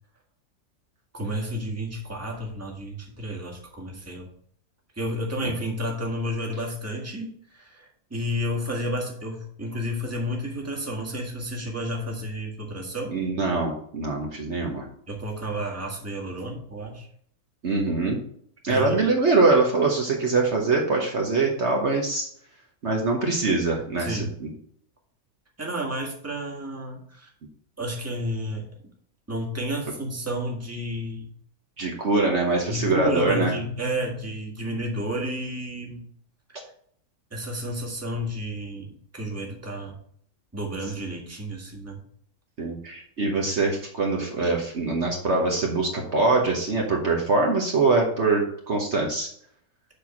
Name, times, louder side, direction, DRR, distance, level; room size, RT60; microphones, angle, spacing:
voice 1, 1.1-4.3 5.0-13.1 15.1-17.1 18.7-18.9 24.0-24.3 25.6-27.3 27.8-28.7 29.3-31.3 32.7-36.0 37.3-40.0 40.5-42.0, equal, 10° right, 0 dB, 1.6 m, -31 dB
voice 2, 13.1-14.9 17.6-18.2 18.6-22.3 22.8-24.5 31.8-33.6 42.6-49.3, right 3 dB, 50° right, 0 dB, 1.4 m, -23 dB
6.8 x 4.6 x 5.8 m, 0.64 s
omnidirectional pair, 1.5 m